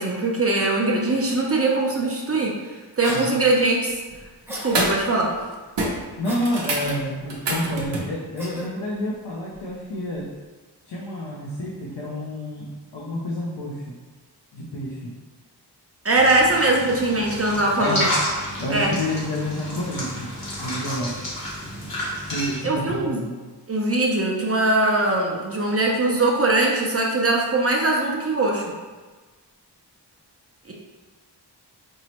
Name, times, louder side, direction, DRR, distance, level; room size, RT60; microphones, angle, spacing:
voice 1, 0.0-2.5 3.0-3.9 4.5-5.3 16.0-18.1 18.7-18.9 22.6-23.2 23.7-28.7 30.7-30.8, right 2 dB, 35° right, -2 dB, 0.5 m, -21 dB
Cough, 3.0-3.4 4.5-4.8 6.2-6.6 8.4-8.7, equal, 5° right, 0.8 m, -35 dB
voice 2, 3.1-3.4 6.2-10.3 10.9-14.0 14.5-15.2 17.8-18.1 18.6-20.3 20.6-21.2 22.3-23.4, left 1 dB, 75° left, -5 dB, 0.6 m, -29 dB
sound 1, 3.9-4.2 4.6-5.1 5.3-5.5 5.8-8.1 10.2-10.3, right 2 dB, 90° right, 0.7 m, -27 dB
sound 2, 16.1-22.6, equal, 55° left, 1.1 m, -30 dB
4.5 x 2.0 x 2.9 m, 1.3 s
wide cardioid pair, 70°, 41 cm